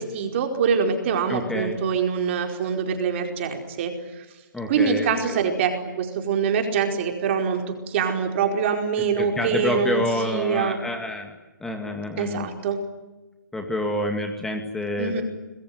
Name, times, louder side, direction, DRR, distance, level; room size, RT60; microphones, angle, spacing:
voice 1, 0.0-4.2 4.7-10.8 12.2-12.8 15.0-15.2, right 6 dB, 35° right, 4 dB, 4.7 m, -24 dB
voice 2, 1.3-1.8 4.5-5.4 9.2-11.3 11.6-12.5 13.5-15.2, left 1 dB, 5° left, 4 dB, 2.2 m, -28 dB
26.5 x 21.5 x 9.6 m, 1.2 s
hypercardioid pair, 155°, 10 cm